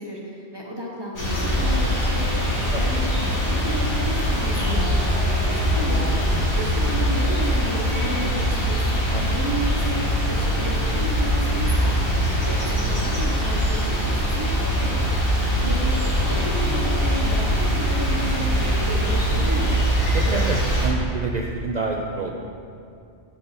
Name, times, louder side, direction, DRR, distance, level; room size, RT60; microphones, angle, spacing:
voice 1, 0.0-8.8 9.4-12.1 12.4-19.7, right 1 dB, 25° right, -4 dB, 0.9 m, -32 dB
sound 1, 1.1-20.9, equal, 75° left, 2.4 m, -22 dB
voice 2, 20.1-22.3, right 4 dB, 55° right, 0 dB, 0.5 m, -28 dB
7.1 x 6.5 x 4.3 m, 2.5 s
omnidirectional pair, 1.2 m